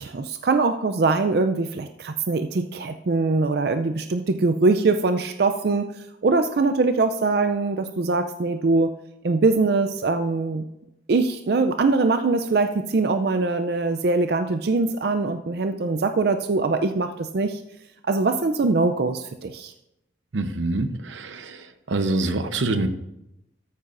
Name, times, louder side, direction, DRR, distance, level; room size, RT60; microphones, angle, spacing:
voice 1, 0.0-5.9 6.2-8.9 9.2-10.6 11.1-17.6 18.0-19.7, right 3 dB, 55° right, 8 dB, 0.4 m, -22 dB
voice 2, 20.3-22.9, right 2 dB, 85° right, 9 dB, 0.8 m, -26 dB
13.5 x 8.7 x 2.5 m, 0.88 s
head